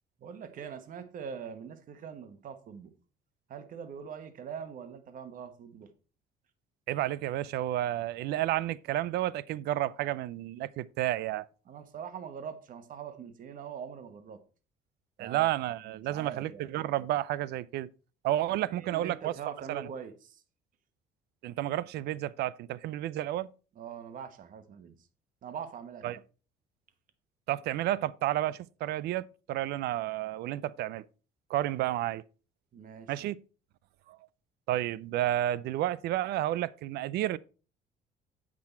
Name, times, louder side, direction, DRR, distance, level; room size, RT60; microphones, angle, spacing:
voice 1, 0.2-2.9 3.5-5.9 11.7-14.4 15.2-15.5 15.9-16.7 18.7-20.4 23.8-24.9 25.4-26.2 32.7-33.1, right 7 dB, 55° right, 1.2 m, -43 dB
voice 2, 6.9-11.5 15.2-17.9 18.2-19.3 19.7-19.9 21.4-23.5 26.0-26.2 27.5-31.1 31.5-32.2 33.1-33.4 34.1-34.2 34.7-37.4, right 14 dB, 75° right, 0.5 m, -31 dB
8.5 x 6.1 x 4.4 m
cardioid pair, 110°, 17 cm